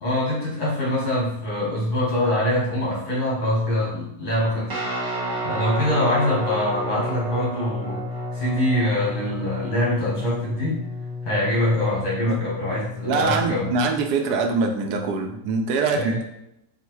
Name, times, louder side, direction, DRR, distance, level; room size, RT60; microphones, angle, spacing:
voice 1, 0.0-4.7 5.4-8.0 8.3-10.8 11.3-13.7 15.9-16.2, left 1 dB, 70° left, -5 dB, 2.0 m, -24 dB
Guitar, 4.7-14.1, left 1 dB, 40° right, 0.3 m, -31 dB
voice 2, 13.0-16.2, right 4 dB, 75° right, 4 dB, 1.1 m, -23 dB
3.7 x 2.5 x 4.5 m, 0.82 s
omnidirectional pair, 1.8 m